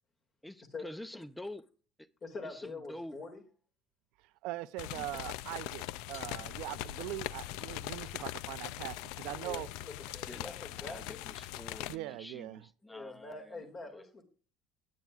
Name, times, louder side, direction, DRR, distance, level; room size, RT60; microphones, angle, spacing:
voice 1, 0.4-1.7 2.0-2.1 2.4-3.2 5.0-5.1 10.2-14.1, left 1 dB, 5° left, 0.5 m, -48 dB
voice 2, 2.2-3.4 9.2-11.2 12.9-14.2, left 3 dB, 30° left, 2.2 m, -45 dB
voice 3, 4.4-9.7 11.9-12.7, right 17 dB, 70° right, 0.5 m, -41 dB
sound 1, 4.8-12.0, left 15 dB, 80° left, 0.4 m, -41 dB
19.5 x 9.5 x 2.4 m
cardioid pair, 155°, 0 cm